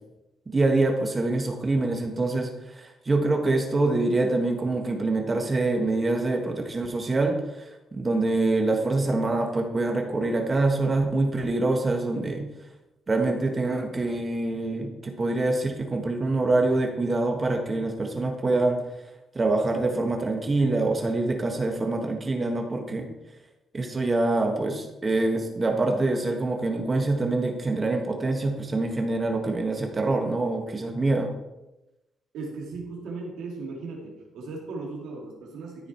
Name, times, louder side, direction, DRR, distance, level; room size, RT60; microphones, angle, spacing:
voice 1, 0.5-12.5 13.1-18.8 19.3-23.1 23.7-31.3, right 2 dB, 30° right, 4 dB, 1.4 m, -25 dB
voice 2, 32.3-35.9, right 3 dB, 85° right, -1 dB, 2.9 m, -37 dB
14.0 x 5.0 x 4.5 m, 0.97 s
cardioid pair, 90°, 0 cm